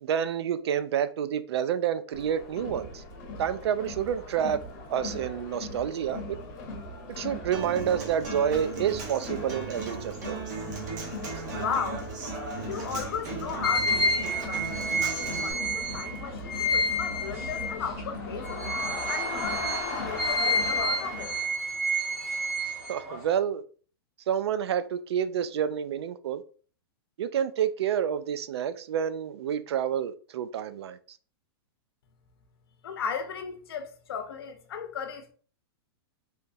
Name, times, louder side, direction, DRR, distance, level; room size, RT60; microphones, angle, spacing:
voice 1, 0.0-3.0 3.4-4.6 4.9-6.4 7.1-10.4 11.3-11.4 22.9-23.6 24.3-26.4 27.2-31.0, right 9 dB, 85° right, 0.4 m, -29 dB
Crowd, 2.1-21.5, left 2 dB, 30° left, 1.0 m, -38 dB
Human voice / Acoustic guitar, 7.5-15.5, right 4 dB, 45° right, 0.9 m, -37 dB
voice 2, 11.6-12.0 12.6-14.1 14.5-18.6 19.1-21.3 32.8-35.3, left 7 dB, 65° left, 0.7 m, -35 dB
sound 1, 13.6-18.0 18.4-23.3, equal, 25° right, 1.2 m, -29 dB
3.5 x 2.9 x 2.7 m
supercardioid pair, 175°, 13 cm